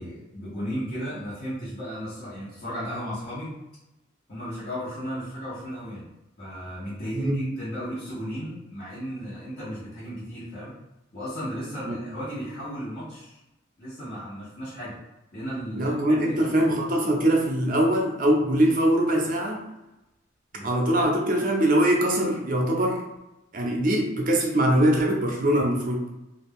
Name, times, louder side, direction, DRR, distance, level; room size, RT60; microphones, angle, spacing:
voice 1, 0.0-3.6 4.3-6.1 6.4-10.7 11.1-13.4 13.8-15.0 15.3-16.6 20.5-20.7, equal, 50° left, -11 dB, 1.0 m, -35 dB
voice 2, 7.1-7.5 11.9-12.0 15.8-19.6 20.6-23.0 23.5-26.1, right 1 dB, 45° right, 0 dB, 0.5 m, -22 dB
2.4 x 2.2 x 3.5 m, 0.95 s
head